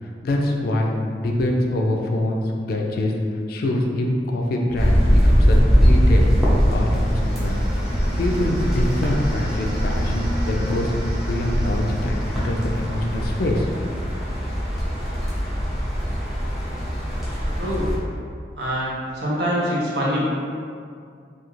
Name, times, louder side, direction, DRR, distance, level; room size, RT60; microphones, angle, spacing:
voice 1, 0.0-6.2 6.7-7.6 8.2-13.7, left 1 dB, 55° left, 1 dB, 0.3 m, -24 dB
sound 1, 4.8-18.0, equal, ahead, 0.5 m, -21 dB
sound 2, 6.0-13.9, equal, 20° right, 0.9 m, -35 dB
voice 2, 17.6-17.9 18.6-20.4, equal, 65° right, -6 dB, 0.7 m, -24 dB
2.4 x 2.3 x 3.0 m, 2.3 s
head